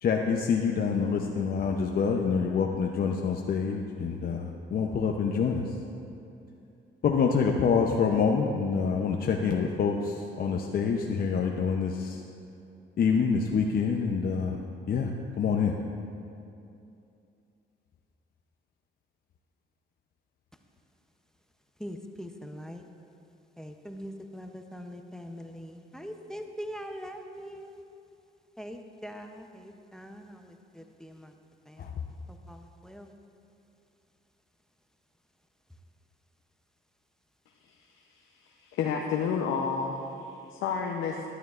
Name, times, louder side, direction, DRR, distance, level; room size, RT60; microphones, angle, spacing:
voice 1, 0.0-5.7 7.0-12.2 13.0-14.6 14.9-15.1 15.4-15.7 31.8-31.9, left 6 dB, 50° left, 0.6 m, -26 dB
voice 2, 21.8-22.8 23.6-27.8 28.6-29.4 29.9-30.2 31.0-31.1 32.5-32.6 32.8-33.1, equal, 5° left, 0.6 m, -41 dB
voice 3, 37.6-41.2, left 6 dB, 85° left, 0.7 m, -32 dB
12.0 x 11.0 x 2.4 m
cardioid pair, 90°, 20 cm